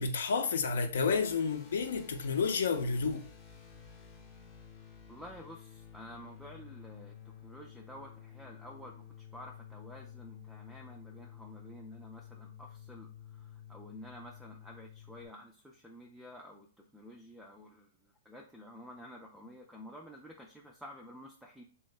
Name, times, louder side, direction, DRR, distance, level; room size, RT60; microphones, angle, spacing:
voice 1, 0.0-3.2, left 5 dB, 80° left, 0.6 m, -30 dB
sound 1, 0.9-15.3, left 8 dB, 25° left, 0.7 m, -52 dB
voice 2, 5.1-21.6, equal, ahead, 0.3 m, -51 dB
3.1 x 2.8 x 3.2 m
hypercardioid pair, 155°, 0 cm